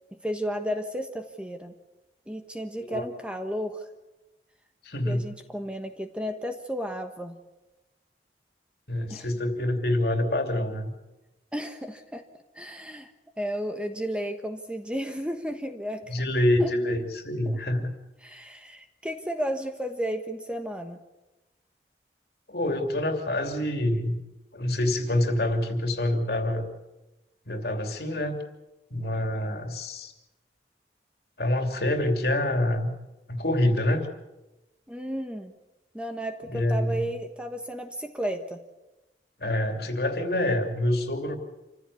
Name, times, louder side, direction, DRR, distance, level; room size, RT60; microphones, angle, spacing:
voice 1, 0.1-1.7 2.3-3.9 5.0-7.3 9.1-9.3 11.5-12.2 12.5-13.1 13.4-16.2 16.6-16.7 17.4-17.8 18.2-21.0 34.9-35.5 35.9-38.6, equal, 5° right, 6 dB, 1.3 m, -33 dB
voice 2, 4.8-5.2 8.9-10.9 16.1-17.9 22.5-24.2 24.5-26.6 27.5-28.4 28.9-30.1 31.4-32.9 33.3-34.1 36.5-37.0 39.4-41.4, left 1 dB, 60° left, 5 dB, 2.9 m, -26 dB
27.5 x 15.0 x 8.4 m, 1.0 s
head